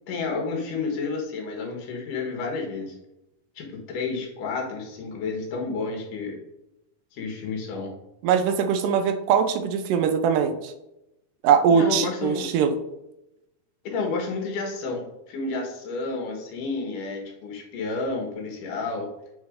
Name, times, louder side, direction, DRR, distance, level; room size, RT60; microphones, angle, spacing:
voice 1, 0.1-3.0 3.6-6.4 7.1-7.9 11.8-12.5 13.8-19.1, left 4 dB, 80° left, 1 dB, 3.1 m, -30 dB
voice 2, 8.2-10.7 11.4-12.8, right 7 dB, 85° right, 9 dB, 2.4 m, -21 dB
8.8 x 3.8 x 5.0 m, 0.89 s
omnidirectional pair, 3.7 m